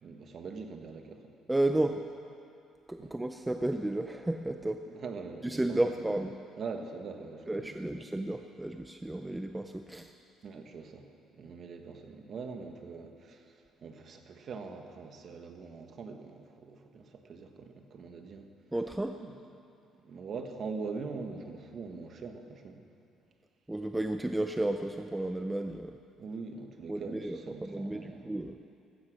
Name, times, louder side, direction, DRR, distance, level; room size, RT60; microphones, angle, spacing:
voice 1, 0.0-1.3 1.8-2.0 3.0-3.4 4.8-6.1 6.6-8.0 10.4-18.5 19.1-19.3 19.9-22.8 26.2-28.3, right 4 dB, 40° right, 5 dB, 1.4 m, -43 dB
voice 2, 1.5-2.1 2.9-4.9 5.4-6.4 7.5-10.1 18.7-19.2 23.7-26.0 26.9-28.6, right 1 dB, 5° right, 6 dB, 0.4 m, -32 dB
15.0 x 15.0 x 6.4 m, 2.5 s
cardioid pair, 160°, 0 cm